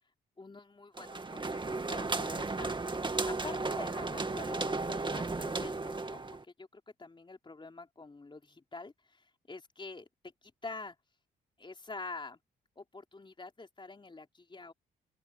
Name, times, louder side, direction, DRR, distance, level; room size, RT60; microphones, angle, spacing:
voice 1, 0.4-2.7 3.3-10.1 10.4-11.0 11.6-12.4 12.8-14.7, left 3 dB, 25° left, 3.7 m, -46 dB
sound 1, 1.0-6.4, right 3 dB, 25° right, 2.1 m, -34 dB
open air
supercardioid pair, 60°, 19 cm